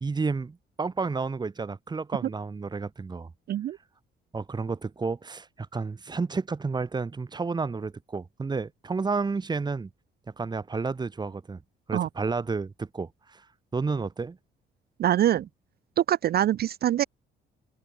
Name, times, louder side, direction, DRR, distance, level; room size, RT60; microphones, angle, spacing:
voice 1, 0.0-3.3 4.3-9.9 10.4-11.6 11.9-13.5 13.7-14.4 15.3-15.4, right 4 dB, 20° right, 0.7 m, -31 dB
voice 2, 15.0-15.5 16.0-17.0, right 11 dB, 50° right, 0.4 m, -24 dB
cardioid pair, 90°, 20 cm